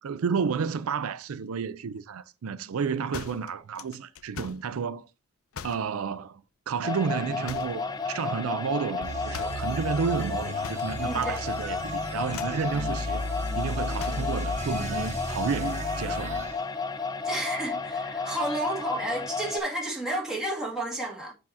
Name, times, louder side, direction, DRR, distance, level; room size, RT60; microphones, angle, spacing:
voice 1, 0.0-5.1 5.6-6.4 6.7-13.2 13.5-16.4, right 6 dB, 80° right, 0.4 m, -31 dB
sound 1, 3.1-4.7 5.5-5.9 7.4-7.9 9.3-9.7 10.6-11.4 11.7-11.9 12.3-12.7 14.0-14.4, left 7 dB, 75° left, 0.5 m, -41 dB
sound 2, 6.8-19.6, left 4 dB, 20° left, 0.4 m, -32 dB
sound 3, 9.0-16.6, equal, 35° right, 1.5 m, -34 dB
voice 2, 11.0-11.3 17.2-21.3, right 1 dB, 5° right, 2.1 m, -31 dB
7.5 x 2.9 x 5.8 m
head